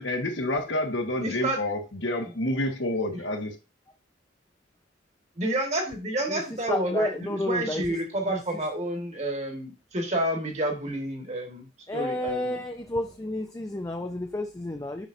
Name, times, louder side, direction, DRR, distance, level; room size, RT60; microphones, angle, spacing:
voice 1, 0.0-3.5, left 1 dB, 70° left, 4 dB, 1.3 m, -28 dB
voice 2, 1.2-1.6 5.4-11.7 11.9-12.5, right 1 dB, 35° right, 4 dB, 1.5 m, -29 dB
voice 3, 6.3-8.0 8.3-8.6 11.9-15.1, left 1 dB, 15° left, 4 dB, 0.5 m, -31 dB
7.1 x 5.6 x 2.6 m, 0.30 s
head